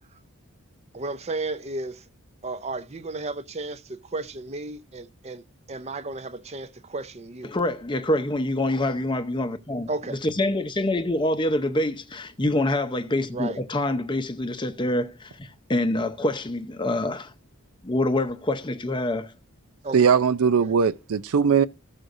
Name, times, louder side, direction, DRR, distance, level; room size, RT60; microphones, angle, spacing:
voice 1, 0.9-2.0 2.4-7.5 9.9-10.2 13.3-13.6 19.8-20.1 20.6-20.7, right 2 dB, 30° right, 0.6 m, -34 dB
voice 2, 7.5-9.9 10.2-17.3 17.8-19.3, left 1 dB, 20° left, 0.6 m, -26 dB
voice 3, 19.9-21.6, right 6 dB, 75° right, 0.5 m, -20 dB
15.0 x 6.3 x 2.6 m
head